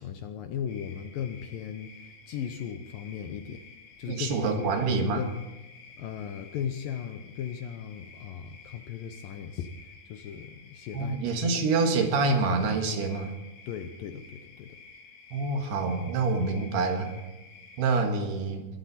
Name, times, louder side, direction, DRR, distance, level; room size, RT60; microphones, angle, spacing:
voice 1, 0.0-3.7 4.0-5.3 6.0-11.4 13.7-14.8, left 8 dB, 75° left, 7 dB, 2.1 m, -37 dB
sound 1, 0.7-18.0, left 4 dB, 50° left, 2.9 m, -52 dB
voice 2, 4.1-5.3 10.9-13.4 15.3-17.2 17.8-18.7, right 3 dB, 75° right, 4 dB, 3.7 m, -26 dB
22.0 x 12.0 x 4.3 m, 1.1 s
omnidirectional pair, 4.7 m